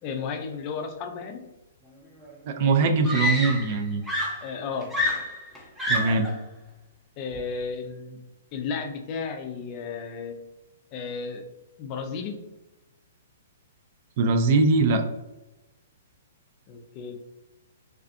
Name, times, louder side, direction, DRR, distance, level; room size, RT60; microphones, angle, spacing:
voice 1, 0.0-1.4 4.4-4.9 7.2-8.2 8.5-10.4 10.9-11.5 11.8-12.4 16.7-17.2, left 5 dB, 35° left, 5 dB, 0.4 m, -33 dB
Screaming, 2.2-2.3 3.0-3.8 4.1-6.4 7.4-7.6, left 1 dB, ahead, 0.6 m, -28 dB
voice 2, 2.5-4.0 5.9-6.3 14.2-15.0, right 3 dB, 50° right, 6 dB, 0.3 m, -21 dB
2.5 x 2.4 x 2.4 m, 1.0 s
hypercardioid pair, 125°, 0 cm